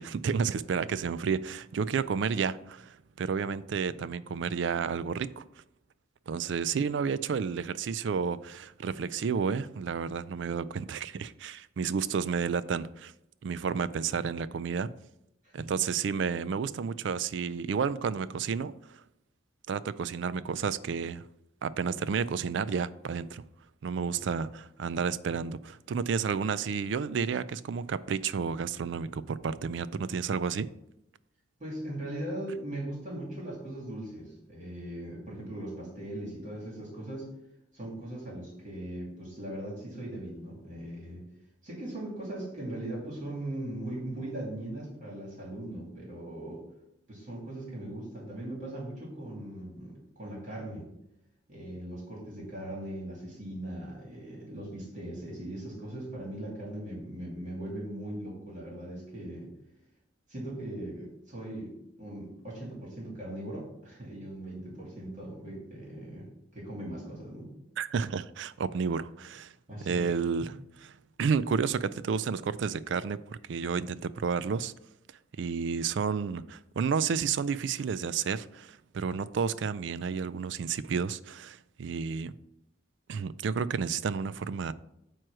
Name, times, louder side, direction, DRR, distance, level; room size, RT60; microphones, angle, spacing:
voice 1, 0.0-5.4 6.3-13.1 13.4-14.9 15.5-18.7 19.7-21.2 21.6-23.4 23.8-30.7 67.8-69.5 69.9-70.5 71.2-74.7 75.4-82.3 83.1-84.7, right 6 dB, 65° right, 0.3 m, -31 dB
voice 2, 3.4-4.0 15.4-15.7 24.1-24.2 31.6-37.3 37.7-41.2 41.6-46.6 47.1-50.9 51.5-59.5 60.3-66.3 66.5-67.5 69.7-70.1 70.4-70.5, right 1 dB, 40° right, 2.6 m, -39 dB
9.1 x 3.1 x 6.1 m
head